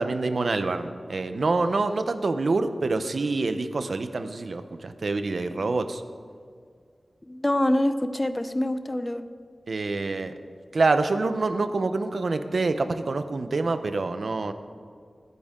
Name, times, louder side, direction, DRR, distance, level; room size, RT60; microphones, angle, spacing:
voice 1, 0.0-6.0 9.7-10.3 10.7-14.5, right 3 dB, 70° right, 9 dB, 0.8 m, -26 dB
voice 2, 7.3-9.3, left 1 dB, 20° left, 10 dB, 0.6 m, -25 dB
21.5 x 9.8 x 3.8 m, 2.1 s
wide cardioid pair, 95°, 0 cm